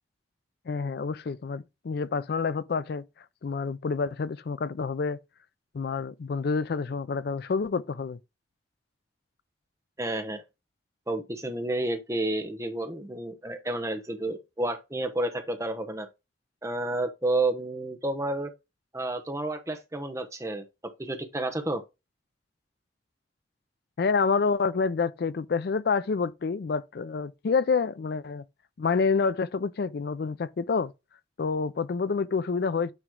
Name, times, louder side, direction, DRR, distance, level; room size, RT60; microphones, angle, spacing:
voice 1, 0.7-3.0 3.4-5.2 5.7-8.2 24.0-28.4 28.8-30.9 31.4-32.9, left 5 dB, 55° left, 0.4 m, -28 dB
voice 2, 10.0-10.4 11.1-16.1 16.6-18.5 18.9-20.6 21.0-21.8, right 2 dB, 15° right, 0.8 m, -30 dB
9.0 x 3.1 x 3.6 m
head